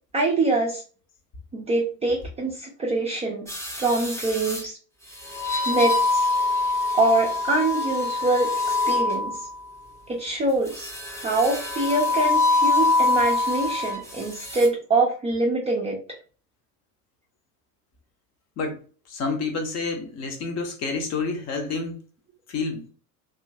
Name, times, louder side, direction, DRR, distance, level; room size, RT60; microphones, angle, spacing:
voice 1, 0.1-0.8 1.5-4.8 5.7-6.3 6.9-9.4 10.1-16.0, right 2 dB, 15° right, -3 dB, 0.4 m, -24 dB
sound 1, 3.5-4.6 5.3-9.6 10.8-14.0 14.4-14.7, left 3 dB, 5° left, 0.8 m, -24 dB
voice 2, 19.1-21.9 22.5-22.9, left 4 dB, 35° left, 5 dB, 0.7 m, -28 dB
2.8 x 2.4 x 2.6 m, 0.38 s
figure-of-eight pair, 75°, 47 cm